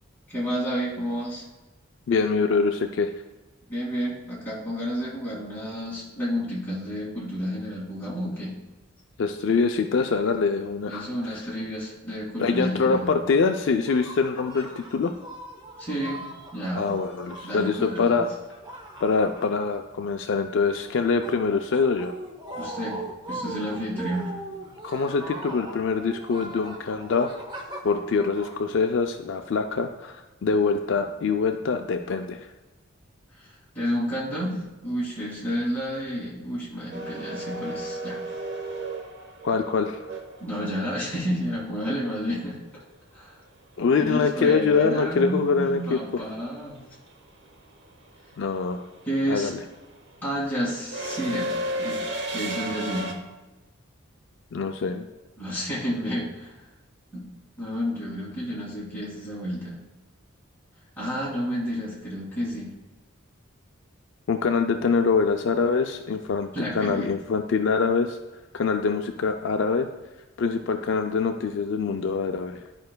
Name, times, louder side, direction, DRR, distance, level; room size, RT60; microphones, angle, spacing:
voice 1, 0.3-1.4 3.7-8.5 10.9-13.1 15.8-16.2 16.5-16.9 17.4-18.2 22.6-23.0 23.3-24.3 33.4-33.5 33.7-38.3 40.4-42.8 43.1-43.3 44.0-46.8 49.1-49.5 50.2-53.1 55.4-56.5 57.1-57.2 57.6-59.8 61.0-62.7 66.5-67.1, equal, 10° left, -8 dB, 2.3 m, -30 dB
voice 2, 2.1-3.1 9.2-11.0 11.3-11.4 12.4-15.1 16.8-18.3 19.0-22.1 24.8-27.3 27.8-32.5 39.4-40.0 43.8-46.0 48.4-48.8 49.3-49.5 54.5-55.0 64.3-68.2 68.5-69.9 70.4-72.6, left 5 dB, 60° left, 5 dB, 0.4 m, -24 dB
sound 1, 13.8-20.0 20.3-29.3, right 1 dB, 20° right, 0.8 m, -40 dB
sound 2, 36.9-41.0 43.4-43.5 44.8-45.1 45.3-53.1, right 1 dB, 55° right, 0.9 m, -34 dB
11.5 x 5.2 x 2.2 m, 1.1 s
head